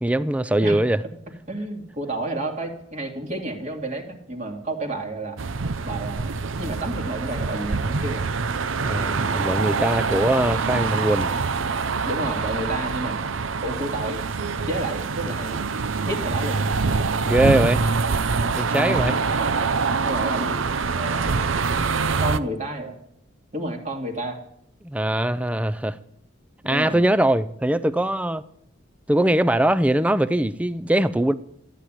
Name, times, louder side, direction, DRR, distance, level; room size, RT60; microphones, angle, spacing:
voice 1, 0.0-1.0 8.8-11.3 17.2-17.8 18.5-19.1 24.8-26.0 26.7-28.4 29.1-31.3, right 1 dB, 5° right, 0.5 m, -21 dB
voice 2, 1.5-5.4 5.8-8.2 12.1-13.2 13.6-14.2 14.7-15.6 16.0-16.6 18.7-19.3 20.0-20.6 21.0-21.5 22.2-23.0 23.5-24.4 26.6-27.0, right 1 dB, 35° right, 2.4 m, -30 dB
sound 1, 5.4-22.4, right 4 dB, 80° right, 0.7 m, -25 dB
14.5 x 10.0 x 9.0 m
head